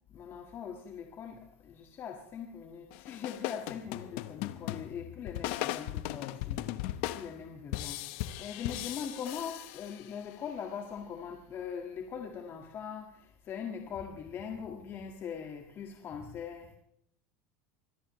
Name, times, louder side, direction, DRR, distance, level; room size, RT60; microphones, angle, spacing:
voice 1, 0.1-8.0 8.4-16.7, left 7 dB, 30° left, 1.8 m, -41 dB
sound 1, 2.9-10.3, left 14 dB, 55° left, 1.0 m, -38 dB
25.0 x 18.5 x 3.2 m
supercardioid pair, 165°, 8 cm